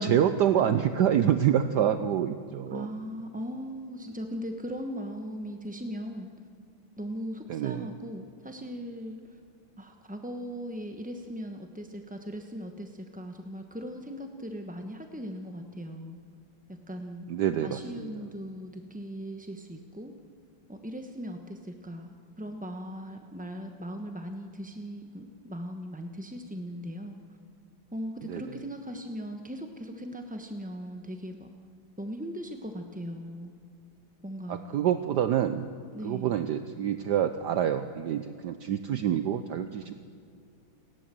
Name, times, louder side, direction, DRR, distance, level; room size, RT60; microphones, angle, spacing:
voice 1, 0.0-2.9 7.5-7.8 17.3-18.1 28.3-28.4 34.5-35.7 36.0-39.9, right 9 dB, 65° right, 10 dB, 1.2 m, -26 dB
voice 2, 2.7-6.3 7.0-9.4 9.8-16.2 16.9-17.3 17.6-20.1 20.7-27.4 27.9-31.5 32.0-33.5 34.2-34.6 35.9-36.4, equal, 5° right, 5 dB, 0.6 m, -39 dB
29.5 x 12.0 x 7.6 m, 2.3 s
omnidirectional pair, 2.1 m